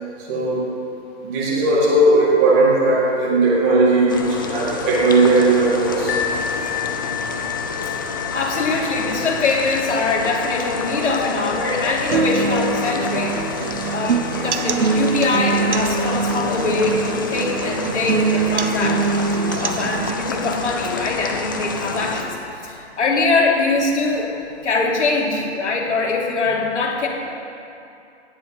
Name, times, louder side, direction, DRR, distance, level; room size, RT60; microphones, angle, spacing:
voice 1, 0.3-0.7 1.2-6.2, right 2 dB, 15° right, -3 dB, 1.8 m, -17 dB
sound 1, 4.1-22.2, left 4 dB, 20° left, 0.6 m, -29 dB
sound 2, 6.1-21.6 22.4-22.5 23.0-23.1, left 9 dB, 55° left, 2.1 m, -34 dB
voice 2, 6.6-6.9 7.8-7.9 8.3-13.4 13.9-19.1 19.6-24.3 24.6-27.1, left 3 dB, 85° left, -2 dB, 3.2 m, -23 dB
sound 3, 12.1-20.1, right 5 dB, 75° right, 1.1 m, -23 dB
17.5 x 10.5 x 5.6 m, 2.7 s
hypercardioid pair, 170°, 35 cm